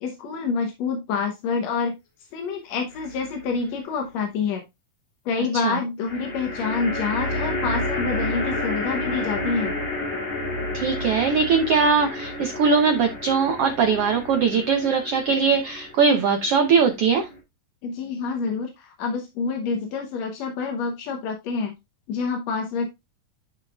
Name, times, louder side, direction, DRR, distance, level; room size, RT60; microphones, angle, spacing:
voice 1, 0.0-2.0 2.3-4.6 5.3-9.7 17.8-21.7 22.1-22.9, left 5 dB, 65° left, 4 dB, 1.9 m, -27 dB
sound 1, 2.9-3.5 6.0-17.4, left 1 dB, 40° left, 3.2 m, -31 dB
voice 2, 10.7-17.3, right 5 dB, 75° right, 6 dB, 1.3 m, -21 dB
10.5 x 5.5 x 2.4 m, 0.22 s
omnidirectional pair, 3.9 m